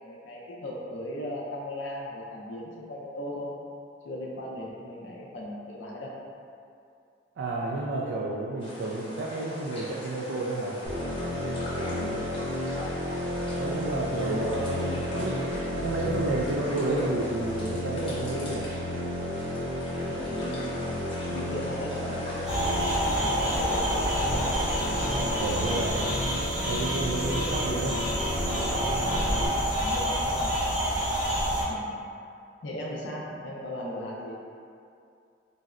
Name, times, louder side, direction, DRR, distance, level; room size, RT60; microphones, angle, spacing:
voice 1, 0.0-3.5 4.0-6.1 11.7-12.2 20.1-20.6 21.3-24.0 28.5-29.2 29.6-30.5 31.7-32.0 32.6-34.3, left 1 dB, 85° left, -4 dB, 0.5 m, -38 dB
voice 2, 7.4-10.8 13.6-18.7 24.8-26.3 26.7-28.0, right 2 dB, 80° right, -4 dB, 0.3 m, -31 dB
sound 1, 8.6-26.0, equal, 30° left, 0.6 m, -41 dB
sound 2, 10.8-29.5, left 1 dB, 45° right, 0.8 m, -33 dB
sound 3, 22.5-31.6, equal, 25° right, 1.0 m, -28 dB
3.9 x 2.0 x 2.4 m, 2.5 s
head